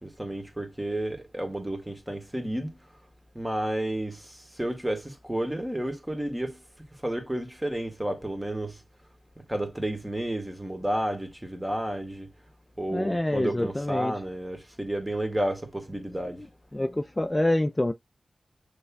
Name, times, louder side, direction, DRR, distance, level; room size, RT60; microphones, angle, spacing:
voice 1, 0.0-2.8 3.3-6.6 7.0-8.8 9.5-12.3 12.8-16.4, right 1 dB, 15° right, 1.7 m, -31 dB
voice 2, 12.9-14.1 16.7-17.9, left 1 dB, 20° left, 0.4 m, -26 dB
6.6 x 3.3 x 2.3 m
cardioid pair, 55°, 0 cm